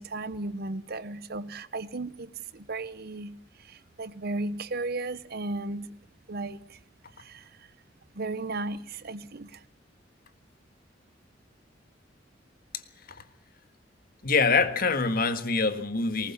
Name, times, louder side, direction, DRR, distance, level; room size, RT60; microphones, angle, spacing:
voice 1, 0.0-5.9 6.3-6.8 7.2-7.7 8.1-9.6, right 2 dB, 55° right, 0.9 m, -35 dB
voice 2, 14.2-16.3, left 4 dB, 50° left, 1.7 m, -25 dB
19.5 x 19.5 x 7.2 m
head